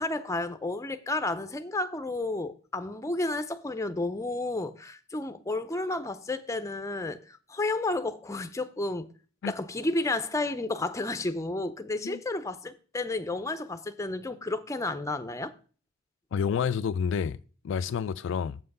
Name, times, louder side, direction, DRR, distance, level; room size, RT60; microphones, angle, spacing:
voice 1, 0.0-9.1 9.5-15.5, left 2 dB, 15° left, 0.5 m, -31 dB
voice 2, 16.3-17.4 17.6-18.6, left 7 dB, 65° left, 0.3 m, -29 dB
7.3 x 5.7 x 5.3 m
head